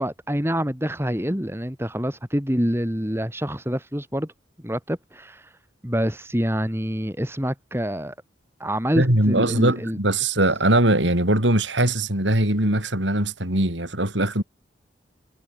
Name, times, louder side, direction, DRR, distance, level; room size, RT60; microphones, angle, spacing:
voice 1, 0.0-4.3 4.6-5.5 5.8-8.1 8.6-10.0, equal, 15° right, 4.8 m, -26 dB
voice 2, 8.9-14.4, right 1 dB, 85° right, 6.1 m, -21 dB
head